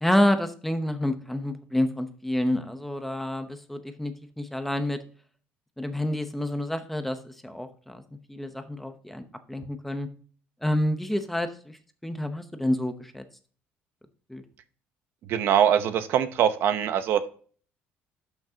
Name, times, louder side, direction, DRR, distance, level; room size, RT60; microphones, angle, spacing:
voice 1, 0.0-5.0 5.8-8.0 8.3-10.1 10.6-11.8 12.0-13.2 14.3-14.4, left 1 dB, 5° left, 8 dB, 0.8 m, -28 dB
voice 2, 15.3-17.2, right 9 dB, 55° right, 11 dB, 0.8 m, -22 dB
12.0 x 6.0 x 2.8 m, 0.43 s
cardioid pair, 155°, 5 cm